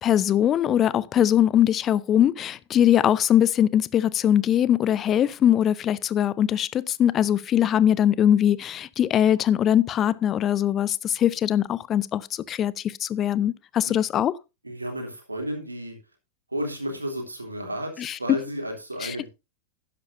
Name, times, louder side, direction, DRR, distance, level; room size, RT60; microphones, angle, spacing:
voice 1, 0.0-14.3 18.0-18.2 19.0-19.3, left 10 dB, 30° left, 0.5 m, -21 dB
voice 2, 14.6-16.0 16.5-19.3, right 1 dB, 80° right, 3.0 m, -32 dB
12.0 x 10.5 x 2.6 m
figure-of-eight pair, 90°, 0 cm